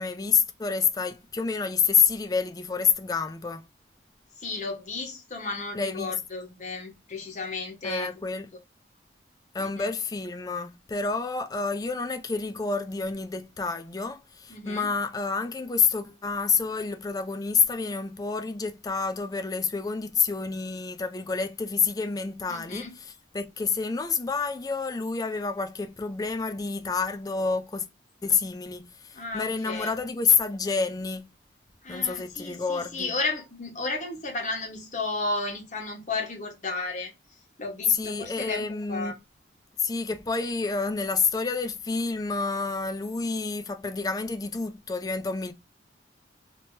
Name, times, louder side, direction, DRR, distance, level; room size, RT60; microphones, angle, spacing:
voice 1, 0.0-3.6 5.7-6.2 7.8-8.5 9.5-27.9 28.2-31.3 31.9-33.1 37.9-39.2 39.8-45.5, left 5 dB, 20° left, 0.4 m, -28 dB
voice 2, 4.4-8.1 9.6-9.9 14.5-14.9 22.5-22.9 29.1-29.9 31.8-37.1 37.6-39.1, left 3 dB, 40° left, 1.2 m, -33 dB
3.5 x 2.9 x 2.7 m
head